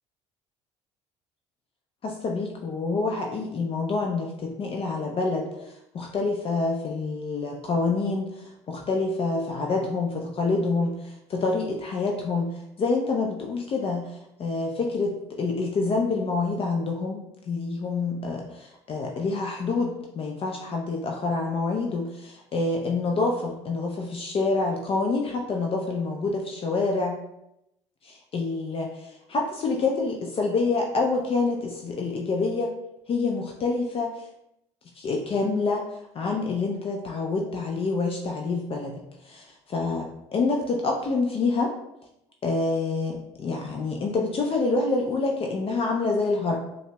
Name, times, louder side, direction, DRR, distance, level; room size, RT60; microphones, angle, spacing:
voice 1, 2.0-27.2 28.0-32.7 33.1-34.3 35.0-35.8 36.1-41.7 42.4-46.6, left 3 dB, 40° left, 1 dB, 0.5 m, -27 dB
5.3 x 2.1 x 2.2 m, 0.84 s
hypercardioid pair, 70°, 15 cm